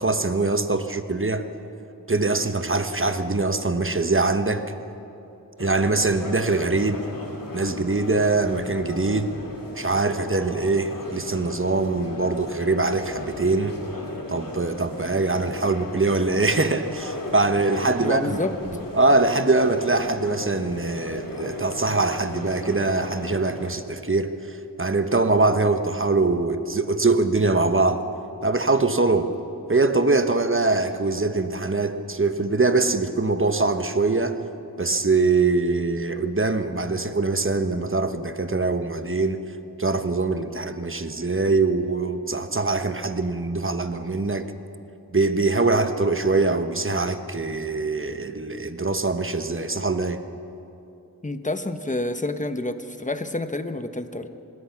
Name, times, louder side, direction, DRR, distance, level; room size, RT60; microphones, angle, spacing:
voice 1, 0.0-1.5 2.1-4.6 5.6-7.0 7.5-9.3 9.7-13.8 14.3-18.4 18.6-28.0 28.4-29.3 29.7-34.4 34.8-39.4 39.8-44.5 45.1-50.2, right 3 dB, 30° right, 9 dB, 1.2 m, -23 dB
sound 1, 5.6-23.7, left 2 dB, 60° left, 2.4 m, -36 dB
voice 2, 18.0-18.6 51.2-54.3, left 2 dB, 20° left, 9 dB, 1.1 m, -28 dB
25.5 x 19.5 x 5.9 m, 2.9 s
wide cardioid pair, 60°, 38 cm